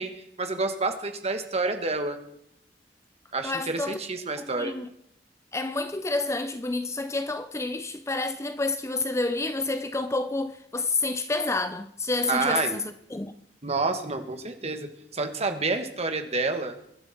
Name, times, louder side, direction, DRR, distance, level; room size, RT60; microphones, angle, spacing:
voice 1, 0.0-2.2 3.3-4.8 12.3-12.8 13.6-16.8, right 3 dB, 35° right, 1.9 m, -29 dB
voice 2, 3.4-4.0 4.4-4.9 5.5-13.3, left 2 dB, 15° left, 0.6 m, -29 dB
23.0 x 12.0 x 4.5 m
head